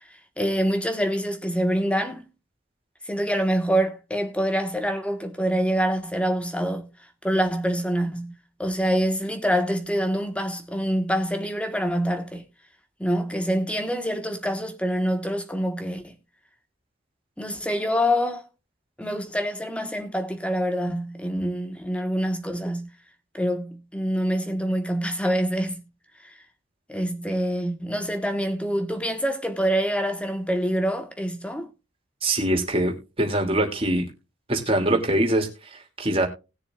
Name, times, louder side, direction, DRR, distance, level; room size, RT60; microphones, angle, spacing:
voice 1, 0.4-2.2 3.1-6.9 7.2-12.4 13.0-16.1 17.4-18.4 19.0-22.9 23.3-25.8 26.3-26.4 26.9-31.7, equal, 5° left, 1.4 m, -26 dB
voice 2, 32.2-34.0 34.5-36.3, right 1 dB, 30° right, 2.7 m, -23 dB
19.5 x 6.9 x 2.5 m
head